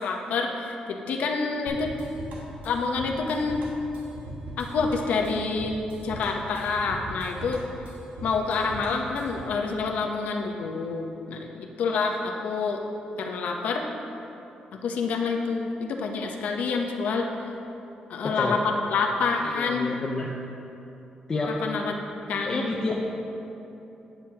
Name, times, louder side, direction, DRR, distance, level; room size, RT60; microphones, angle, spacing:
voice 1, 0.0-1.9 2.6-3.6 4.6-7.6 8.2-12.8 13.2-13.9 14.7-17.3 18.1-19.9 21.5-21.9 22.3-22.6, left 4 dB, 80° left, 2 dB, 0.8 m, -27 dB
sound 1, 1.7-9.6, right 1 dB, 85° right, 1.2 m, -39 dB
voice 2, 18.2-18.6 19.4-20.3 21.3-21.6 22.4-23.1, left 3 dB, 25° left, -3 dB, 0.5 m, -29 dB
8.9 x 8.9 x 2.8 m, 3.0 s
wide cardioid pair, 165°, 3 cm